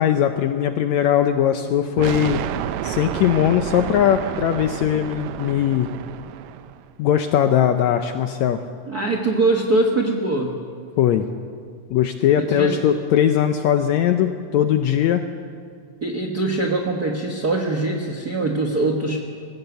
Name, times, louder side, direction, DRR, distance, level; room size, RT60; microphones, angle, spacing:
voice 1, 0.0-2.4 2.8-5.9 7.0-8.6 11.0-11.3 11.9-15.2, left 10 dB, 75° left, 7 dB, 1.7 m, -19 dB
sound 1, 2.0-6.9, right 11 dB, 80° right, 1.7 m, -30 dB
voice 2, 8.9-10.6 12.4-12.8 16.0-19.2, right 2 dB, 55° right, 2 dB, 1.0 m, -22 dB
21.0 x 16.5 x 8.1 m, 2.2 s
omnidirectional pair, 3.9 m